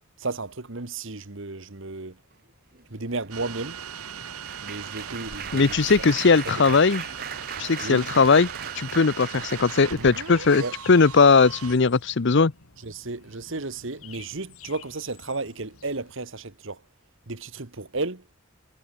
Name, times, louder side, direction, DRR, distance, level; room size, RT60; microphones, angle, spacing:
voice 1, 0.2-2.2 2.9-3.8 4.6-6.3 6.7-6.8 7.8-8.1 10.5-10.7 12.8-16.8 17.3-18.2, right 3 dB, 60° right, 1.6 m, -33 dB
Applause, 2.7-11.0 11.7-11.9 12.2-12.4, right 7 dB, 45° right, 3.1 m, -40 dB
sound 1, 3.3-11.8, right 7 dB, 85° right, 1.8 m, -38 dB
sound 2, 5.0-16.1, left 6 dB, 80° left, 3.2 m, -50 dB
voice 2, 5.5-7.0 7.6-8.5 8.8-10.6 10.9-12.5, left 4 dB, 55° left, 0.7 m, -19 dB
head